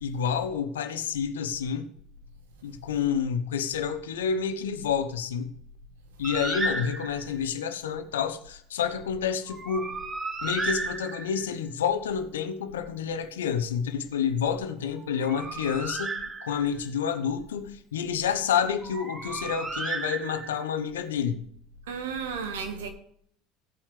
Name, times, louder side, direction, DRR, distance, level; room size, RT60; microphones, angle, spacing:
voice 1, 0.0-1.9 2.6-5.5 6.2-10.0 10.4-16.2 16.4-21.4, left 7 dB, 80° left, 0.9 m, -29 dB
Bird, 6.2-7.4 9.5-11.5 15.0-16.8 18.8-20.7, right 3 dB, 25° right, 1.4 m, -34 dB
voice 2, 21.9-22.9, right 6 dB, 80° right, 1.6 m, -33 dB
16.0 x 8.6 x 3.4 m
hypercardioid pair, 75°, 0 cm